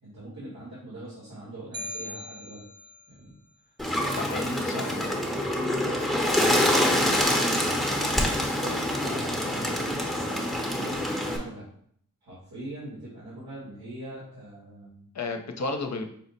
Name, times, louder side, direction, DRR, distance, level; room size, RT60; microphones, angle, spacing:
voice 1, 0.0-2.6 3.1-3.3 4.0-4.3 4.6-6.5 7.1-10.0 10.7-11.7 12.2-15.1, right 1 dB, 85° right, -9 dB, 1.7 m, -41 dB
sound 1, 1.7-3.1, left 1 dB, 30° right, 0.6 m, -39 dB
Bird, 3.8-11.4, left 1 dB, ahead, 0.9 m, -26 dB
voice 2, 4.2-5.0 15.1-16.1, left 3 dB, 50° left, 5 dB, 0.7 m, -32 dB
5.5 x 2.1 x 4.0 m, 0.63 s
wide cardioid pair, 75°, 35 cm